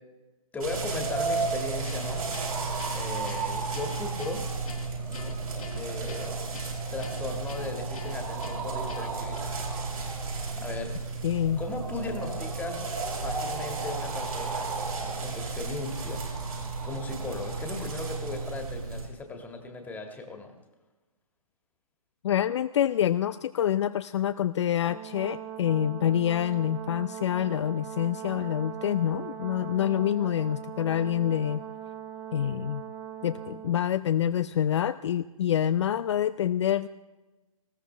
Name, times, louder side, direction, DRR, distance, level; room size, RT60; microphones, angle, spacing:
voice 1, 0.5-2.2 2.9-4.4 5.1-5.4 5.8-6.5 6.9-9.5 10.6-10.9 11.6-12.9 13.2-14.8 15.2-16.2 16.8-20.5, left 3 dB, 10° left, 4 dB, 1.8 m, -37 dB
sound 1, 0.6-19.1, right 4 dB, 75° right, 5.4 m, -33 dB
Guitar, 1.8-9.4, left 5 dB, 70° left, 2.2 m, -47 dB
voice 2, 11.2-11.6 22.2-31.6 32.3-32.8 33.2-36.9, left 10 dB, 50° left, 12 dB, 0.4 m, -27 dB
Brass instrument, 24.9-33.8, right 10 dB, 15° right, 0.9 m, -40 dB
19.5 x 15.5 x 3.3 m, 1.1 s
figure-of-eight pair, 130°, 19 cm